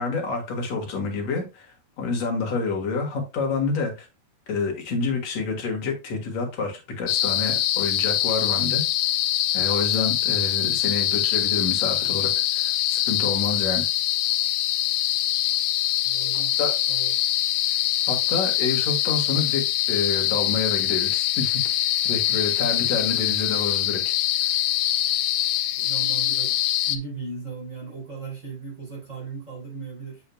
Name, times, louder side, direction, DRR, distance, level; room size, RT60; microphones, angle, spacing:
voice 1, 0.0-4.1 4.5-8.8 9.5-13.9 16.6-16.7 18.1-19.6 19.9-21.6 22.0-24.1, left 4 dB, 50° left, 2.2 m, -28 dB
sound 1, 7.1-27.0, left 13 dB, 80° left, 2.5 m, -24 dB
voice 2, 16.0-17.2 25.8-26.5 26.9-30.2, right 5 dB, 20° right, 4.4 m, -36 dB
7.7 x 6.9 x 2.3 m
omnidirectional pair, 4.8 m